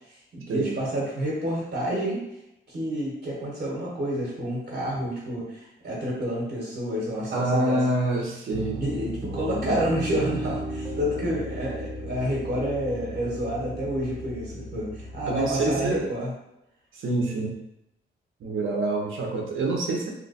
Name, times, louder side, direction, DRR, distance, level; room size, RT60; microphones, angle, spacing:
voice 1, 0.1-2.2 2.7-5.6 5.8-7.8 8.8-16.3, equal, 50° right, -5 dB, 1.2 m, -29 dB
voice 2, 7.3-8.8 15.3-16.1 16.9-17.5 18.4-20.1, right 2 dB, 75° right, 0 dB, 0.8 m, -26 dB
Piano, 8.5-16.0, equal, 5° right, 1.0 m, -36 dB
2.9 x 2.1 x 4.1 m, 0.85 s
wide cardioid pair, 135°, 21 cm